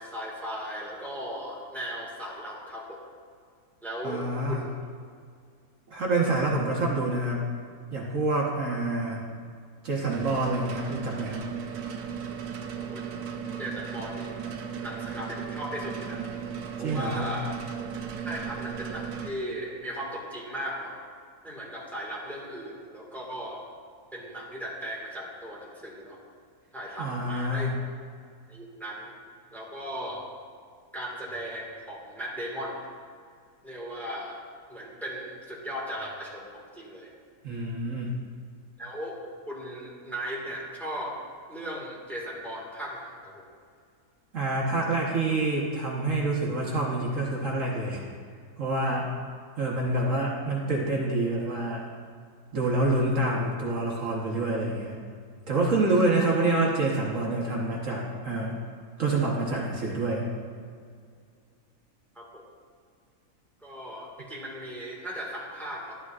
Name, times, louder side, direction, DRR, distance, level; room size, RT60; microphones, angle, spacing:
voice 1, 0.0-3.0 3.8-4.7 12.8-13.0 13.6-14.3 14.8-16.2 16.8-17.6 18.2-21.0 21.4-23.6 24.1-26.2 26.7-27.7 28.5-29.1 29.5-30.2 30.9-32.9 33.6-34.4 34.7-37.1 38.8-39.2 39.5-41.2 41.5-43.4 62.1-62.4 63.6-66.0, equal, ahead, -4 dB, 1.7 m, -37 dB
voice 2, 4.0-4.6 5.9-7.4 7.9-9.3 9.8-11.4 16.8-17.3 27.0-27.7 37.4-38.2 44.3-48.0 48.6-49.1 49.6-51.8 52.5-55.0 55.5-58.6 59.0-60.3, right 2 dB, 55° right, -3 dB, 1.5 m, -27 dB
sound 1, 10.1-19.3, right 7 dB, 85° right, 1.3 m, -36 dB
12.0 x 11.0 x 2.4 m, 2.1 s
omnidirectional pair, 1.6 m